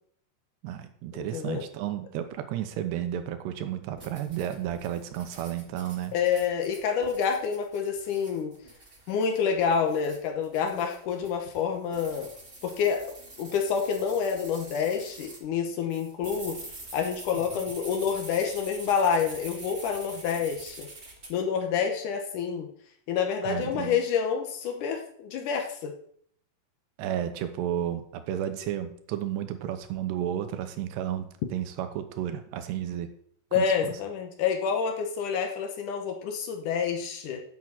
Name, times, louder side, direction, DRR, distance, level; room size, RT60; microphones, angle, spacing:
voice 1, 0.6-6.1 17.3-17.4 23.4-24.0 27.0-33.1 33.6-33.9, right 11 dB, 75° right, 8 dB, 2.9 m, -32 dB
voice 2, 1.3-1.6 6.1-8.6 9.1-12.3 12.6-13.1 13.4-16.6 16.9-20.9 21.3-22.7 23.1-25.9 33.5-37.4, left 6 dB, 85° left, 4 dB, 1.7 m, -28 dB
sound 1, 4.0-15.4 15.9-21.3, right 2 dB, 35° right, 0.9 m, -46 dB
8.7 x 7.2 x 7.6 m, 0.63 s
omnidirectional pair, 5.3 m